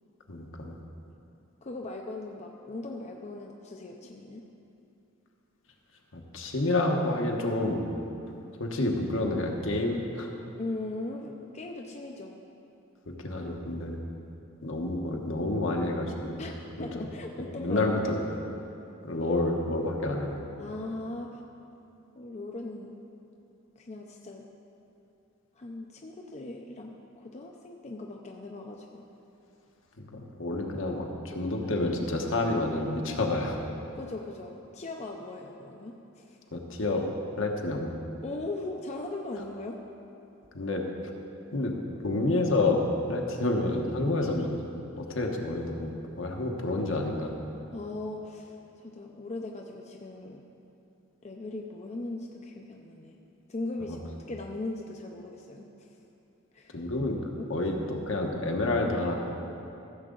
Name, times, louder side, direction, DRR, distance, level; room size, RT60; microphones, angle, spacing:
voice 1, 0.3-0.8 6.1-7.8 8.6-10.3 13.1-14.0 14.6-16.4 16.8-16.9 17.4-18.2 19.0-20.4 30.1-33.6 36.5-37.1 37.4-37.9 40.5-40.9 41.5-41.8 42.0-44.5 45.0-45.9 46.2-47.3 53.9-54.0 56.7-57.2 57.5-59.2, left 2 dB, 70° left, 1 dB, 1.1 m, -29 dB
voice 2, 1.6-4.4 10.6-12.4 16.4-18.2 20.6-21.4 22.1-23.0 23.8-24.4 25.5-29.0 33.9-36.4 38.2-39.8 47.7-50.4 51.2-53.2 53.5-56.0 56.5-56.9 57.4-57.5, left 2 dB, 35° left, 1 dB, 0.5 m, -39 dB
15.0 x 7.2 x 3.9 m, 2.8 s
head